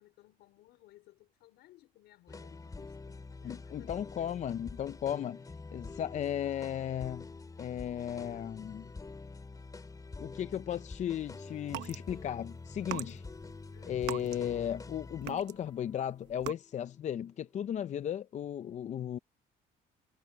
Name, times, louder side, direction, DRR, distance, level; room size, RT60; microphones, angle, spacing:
voice 1, 0.0-3.9 4.2-4.3 13.7-14.0, left 16 dB, 85° left, 4.7 m, -61 dB
sound 1, 2.3-17.5, left 3 dB, 20° left, 3.3 m, -47 dB
voice 2, 3.4-5.4 5.7-7.3 7.6-8.9 10.2-13.2 13.9-19.2, left 10 dB, 45° left, 0.6 m, -35 dB
sound 2, 11.6-12.0 12.7-14.9 15.2-15.8 16.3-16.5, right 16 dB, 85° right, 1.0 m, -41 dB
cardioid pair, 110°, 17 cm